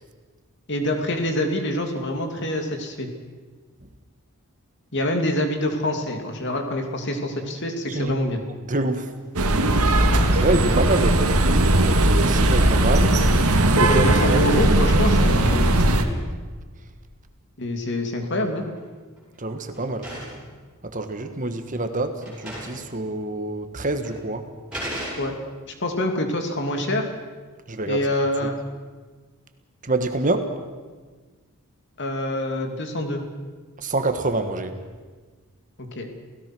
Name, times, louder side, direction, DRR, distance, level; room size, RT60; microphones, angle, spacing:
voice 1, 0.7-3.1 4.9-8.4 13.9-15.9 17.6-18.7 25.2-25.3 25.7-27.1 27.9-28.6 32.0-33.2 35.8-36.1, left 1 dB, 50° left, 4 dB, 2.8 m, -26 dB
voice 2, 8.7-9.1 10.4-11.3 11.8-13.1 13.8-14.4 14.7-14.9 19.4-20.1 20.9-24.4 27.7-28.0 29.8-30.5 33.8-34.7, right 2 dB, 35° right, 7 dB, 1.5 m, -26 dB
sound 1, 9.4-16.0, right 1 dB, 85° right, 2.0 m, -18 dB
sound 2, 18.5-18.8 19.2-20.5 21.4-21.5 21.9-22.0 22.2-22.9 23.2-23.3 24.0-24.2 24.7-25.6, equal, 5° right, 8.0 m, -35 dB
29.0 x 17.0 x 6.2 m, 1.4 s
head